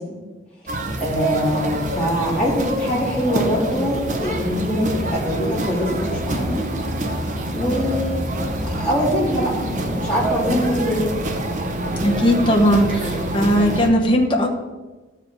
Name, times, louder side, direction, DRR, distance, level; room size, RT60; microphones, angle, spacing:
sound 1, 0.7-13.9, right 1 dB, 40° right, 0.9 m, -26 dB
voice 1, 1.0-6.6 7.5-8.3 8.6-11.1, equal, 5° left, -8 dB, 3.1 m, -23 dB
voice 2, 12.0-14.5, equal, 25° left, -1 dB, 1.0 m, -18 dB
14.0 x 5.0 x 4.7 m, 1.2 s
head